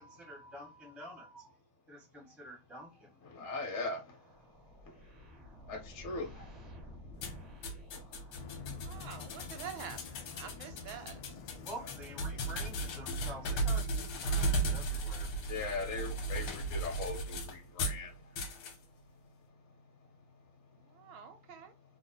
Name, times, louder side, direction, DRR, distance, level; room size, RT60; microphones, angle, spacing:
voice 1, 0.0-1.5 1.9-3.2 11.6-15.3, right 1 dB, ahead, 0.5 m, -48 dB
voice 2, 3.2-4.5 4.7-5.3 5.7-7.5 7.9-8.5 15.5-21.2, left 3 dB, 50° left, 0.9 m, -43 dB
sound 1, 3.9-9.4, left 1 dB, 50° right, 0.8 m, -53 dB
sound 2, 7.2-18.0 18.4-18.8, right 2 dB, 70° left, 1.4 m, -36 dB
sound 3, 8.3-13.8, left 5 dB, 90° left, 0.8 m, -49 dB
voice 3, 8.8-11.2 20.7-21.7, right 8 dB, 75° right, 1.5 m, -47 dB
3.4 x 2.1 x 3.8 m
omnidirectional pair, 2.3 m